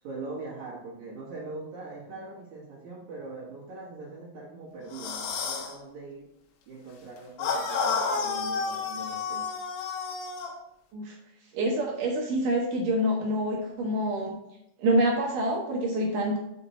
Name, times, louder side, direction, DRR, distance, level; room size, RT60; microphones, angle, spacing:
voice 1, 0.0-6.3 6.7-9.5, right 2 dB, 55° right, -5 dB, 2.4 m, -41 dB
sound 1, 4.9-5.7 7.4-10.6, left 5 dB, 90° left, 3.4 m, -30 dB
voice 2, 11.5-14.4 14.8-16.4, right 1 dB, 75° right, -1 dB, 1.9 m, -26 dB
7.1 x 4.9 x 4.2 m, 0.82 s
omnidirectional pair, 5.2 m